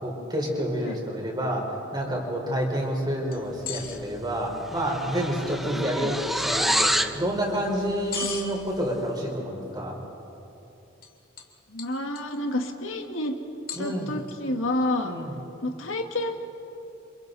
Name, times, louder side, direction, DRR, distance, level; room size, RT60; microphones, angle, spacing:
voice 1, 0.0-10.0 13.7-14.2 15.0-15.3, equal, 20° right, -1 dB, 4.5 m, -29 dB
sound 1, 3.3-4.0 6.8-6.9 8.1-8.5 11.0-11.1 11.4-11.5 11.8-12.4 13.7-14.3, left 6 dB, 45° left, 2.5 m, -35 dB
sound 2, 4.0-4.2 4.5-7.2, equal, ahead, 0.6 m, -27 dB
voice 2, 5.7-6.1 8.2-8.3 11.7-13.3 13.8-15.1 15.6-16.4, left 1 dB, 80° left, 4 dB, 1.9 m, -29 dB
29.5 x 27.5 x 4.1 m, 2.9 s
head